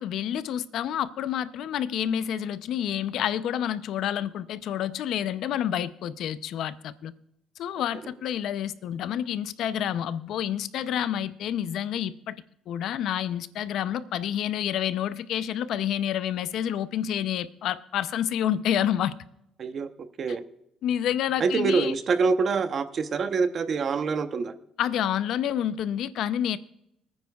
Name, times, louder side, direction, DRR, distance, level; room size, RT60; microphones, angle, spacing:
voice 1, 0.0-7.1 7.6-12.4 12.7-19.2 20.8-21.9 24.8-26.6, left 10 dB, 60° left, 0.5 m, -28 dB
voice 2, 21.4-24.5, right 5 dB, 40° right, 0.8 m, -25 dB
25.0 x 9.5 x 2.3 m
cardioid pair, 150°, 0 cm